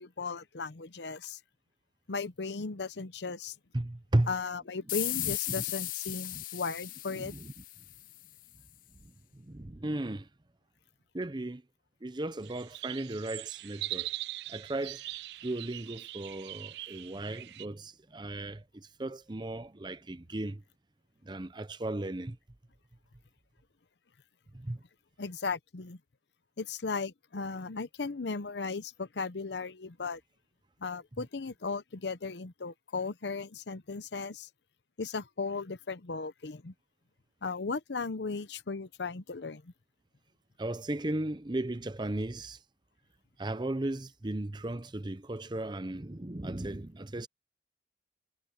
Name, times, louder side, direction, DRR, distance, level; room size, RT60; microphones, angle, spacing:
voice 1, 0.0-1.4 2.1-3.6 4.3-7.3 25.2-26.0 26.6-30.2 30.8-34.5 35.0-36.7 37.4-39.7, left 4 dB, 75° left, 0.8 m, -36 dB
voice 2, 3.7-4.3 5.2-5.6 6.3-6.4 7.1-7.5 9.3-10.3 11.1-11.6 12.0-14.1 14.5-15.0 15.4-20.6 21.2-22.4 24.5-24.8 40.6-42.6 43.4-47.3, right 1 dB, 25° right, 0.7 m, -35 dB
sound 1, 4.9-8.2, left 17 dB, 50° left, 0.4 m, -36 dB
sound 2, 12.4-17.7, right 17 dB, 65° right, 0.3 m, -41 dB
head